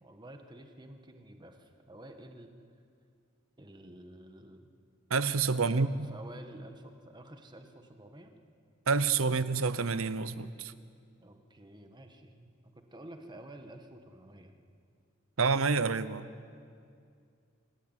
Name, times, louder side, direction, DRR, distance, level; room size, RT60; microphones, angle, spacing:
voice 1, 0.0-2.5 3.6-4.7 5.7-8.4 11.2-14.6, right 1 dB, 20° right, 5 dB, 1.7 m, -50 dB
voice 2, 5.1-6.1 8.9-10.7 15.4-16.3, right 4 dB, 85° right, 14 dB, 0.9 m, -28 dB
27.0 x 15.0 x 9.1 m, 2.3 s
head